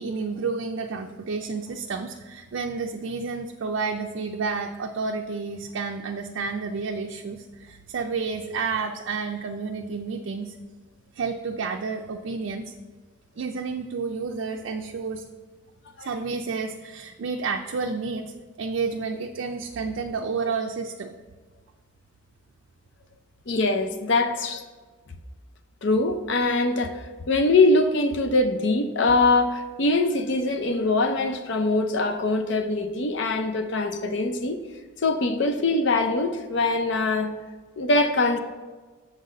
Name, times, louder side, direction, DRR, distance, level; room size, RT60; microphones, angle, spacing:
voice 1, 0.0-10.6 11.1-12.7 13.4-15.3 16.0-18.3 18.6-21.1, right 4 dB, 70° right, 3 dB, 0.4 m, -30 dB
voice 2, 23.5-24.6 25.8-27.0 27.3-34.6 35.0-37.3 37.8-38.4, left 2 dB, 60° left, 6 dB, 0.6 m, -23 dB
7.3 x 4.0 x 6.3 m, 1.4 s
head